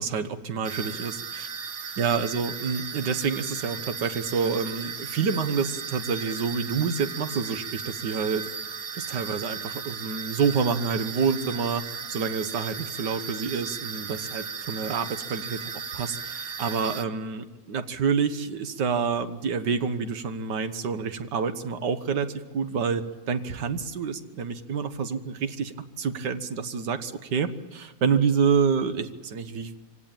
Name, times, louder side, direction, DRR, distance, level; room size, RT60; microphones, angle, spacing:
voice 1, 0.0-1.5 2.0-8.5 8.9-11.8 12.1-22.3 22.5-29.8, right 6 dB, 90° right, 10 dB, 1.9 m, -28 dB
sound 1, 0.6-17.0, right 6 dB, 45° right, 0.9 m, -36 dB
25.0 x 17.5 x 8.9 m, 1.3 s
omnidirectional pair, 1.8 m